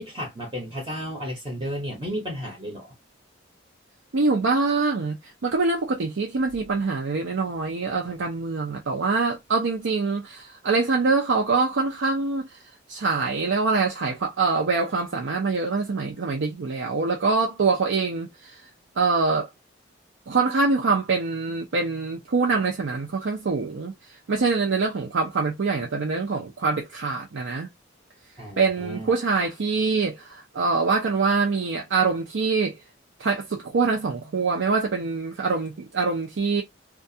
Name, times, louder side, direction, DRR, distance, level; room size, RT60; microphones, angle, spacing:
voice 1, 0.0-2.9 28.4-29.1, equal, 25° right, 0.7 m, -33 dB
voice 2, 4.1-12.6 12.9-18.6 19.0-19.5 20.3-23.9 24.3-27.7 28.6-32.7 33.2-36.6, right 4 dB, 70° right, 0.5 m, -24 dB
2.4 x 2.2 x 2.6 m
head